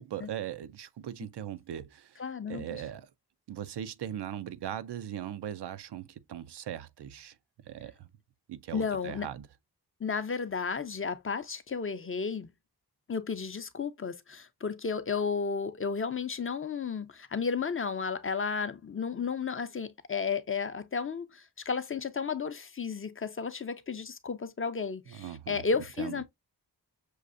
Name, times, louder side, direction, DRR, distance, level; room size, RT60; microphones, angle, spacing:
voice 1, 0.0-3.1 3.5-7.4 7.7-8.1 8.5-9.5 25.1-25.6 26.0-26.2, right 10 dB, 80° right, 0.6 m, -39 dB
voice 2, 2.2-2.8 8.7-9.3 10.0-12.5 13.1-26.2, left 5 dB, 35° left, 0.5 m, -33 dB
6.4 x 2.5 x 2.4 m
wide cardioid pair, 105°, 40 cm